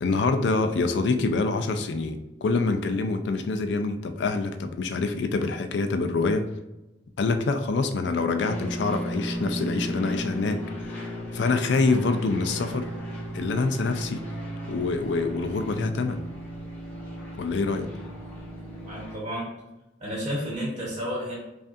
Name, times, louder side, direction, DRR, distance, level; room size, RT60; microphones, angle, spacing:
voice 1, 0.0-6.4 7.2-12.9 13.3-14.3 14.7-16.2 17.4-17.9, left 3 dB, 65° left, 8 dB, 0.4 m, -26 dB
sound 1, 8.4-19.2, equal, 10° left, 1.0 m, -35 dB
voice 2, 18.9-19.5 20.0-21.3, equal, 30° right, -5 dB, 1.1 m, -31 dB
5.1 x 2.4 x 2.6 m, 0.98 s
head